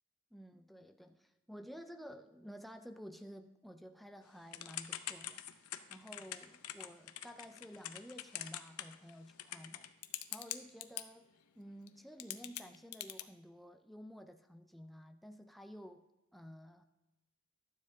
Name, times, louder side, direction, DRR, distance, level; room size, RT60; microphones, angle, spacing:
voice 1, 0.3-5.4 5.9-9.9 10.3-11.3 11.6-16.1 16.3-16.8, equal, ahead, 6 dB, 0.3 m, -52 dB
Typing / Telephone, 4.5-11.0 11.9-12.0 12.2-13.2, left 12 dB, 90° left, 0.5 m, -44 dB
12.0 x 7.3 x 3.5 m, 1.0 s
head